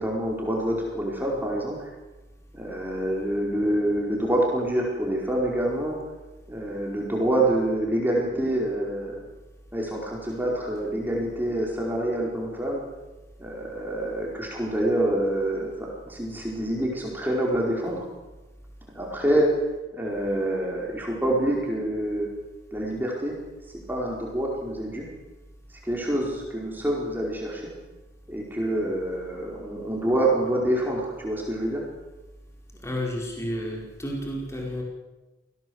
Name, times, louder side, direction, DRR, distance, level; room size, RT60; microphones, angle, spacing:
voice 1, 0.0-1.9 2.5-6.0 6.5-9.2 9.7-12.8 13.4-18.1 18.9-19.5 19.9-22.3 22.7-23.4 23.9-25.1 25.8-27.7 28.3-31.8, right 1 dB, 10° right, -2 dB, 4.8 m, -26 dB
voice 2, 32.8-34.8, equal, 15° left, -2 dB, 5.1 m, -31 dB
28.0 x 17.5 x 8.1 m, 1.1 s
head